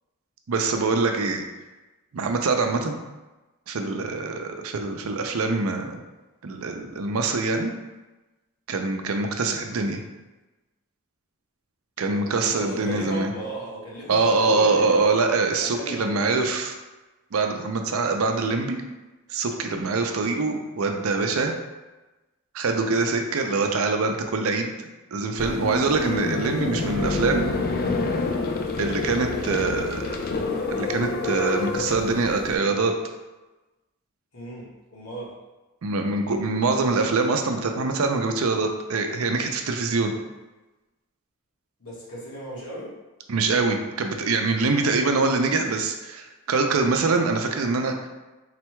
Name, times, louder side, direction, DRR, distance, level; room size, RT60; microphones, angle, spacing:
voice 1, 0.5-1.4 2.1-2.9 3.7-6.0 6.4-7.7 8.7-10.0 12.0-13.3 14.1-16.7 17.3-18.8 19.3-21.5 22.5-24.7 25.1-27.5 28.8-30.1 30.7-32.9 35.8-40.1 43.3-47.9, right 3 dB, 75° right, 4 dB, 0.5 m, -24 dB
voice 2, 12.5-15.3 15.6-16.3 19.6-19.9 34.3-35.4 41.8-42.9, equal, 85° left, -5 dB, 1.3 m, -36 dB
sound 1, 25.4-32.5, left 3 dB, 40° left, 0.4 m, -28 dB
4.1 x 2.2 x 4.5 m, 1.1 s
head